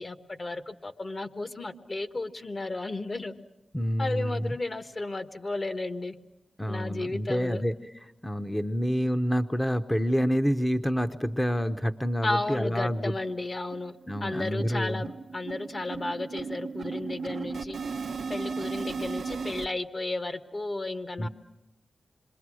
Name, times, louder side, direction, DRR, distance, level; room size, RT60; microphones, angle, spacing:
voice 1, 0.0-3.3 4.0-6.2 6.6-7.6 12.2-14.0 14.2-17.8 18.3-21.3, left 2 dB, 45° left, 9 dB, 1.4 m, -33 dB
voice 2, 3.7-4.6 6.6-7.8 8.2-13.1 14.1-15.0 21.2-21.3, equal, 15° left, 8 dB, 0.8 m, -28 dB
sound 1, 12.4-12.5 12.8-12.9 13.3-13.5 13.7-19.7, right 5 dB, 85° right, 0.8 m, -36 dB
26.5 x 22.5 x 6.3 m, 0.95 s
cardioid pair, 45°, 0 cm